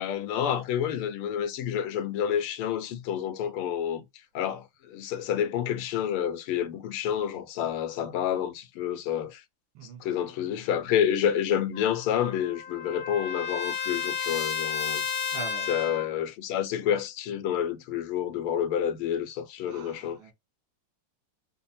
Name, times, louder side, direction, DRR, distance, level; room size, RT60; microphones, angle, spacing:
voice 1, 0.0-4.0 4.3-9.4 10.0-15.0 15.7-20.2, left 9 dB, 85° left, 1.6 m, -29 dB
Trumpet, 11.7-16.1, left 7 dB, 45° left, 0.6 m, -32 dB
voice 2, 15.3-16.0 19.7-20.3, right 5 dB, 90° right, 2.4 m, -43 dB
5.3 x 2.1 x 4.2 m
omnidirectional pair, 2.4 m